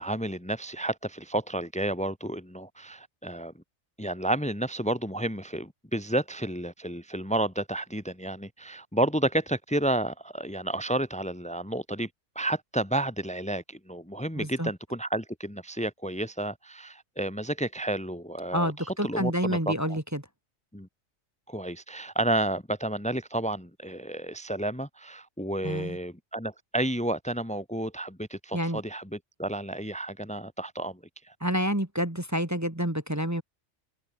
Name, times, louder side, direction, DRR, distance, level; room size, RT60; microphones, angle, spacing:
voice 1, 0.0-3.5 4.0-12.1 12.4-20.0 20.7-20.9 21.5-31.0 31.3-31.4, right 1 dB, 5° left, 2.0 m, -31 dB
voice 2, 14.4-14.7 18.5-20.2 25.6-26.0 28.5-28.8 31.4-33.4, equal, 10° right, 2.1 m, -28 dB
omnidirectional pair, 1.3 m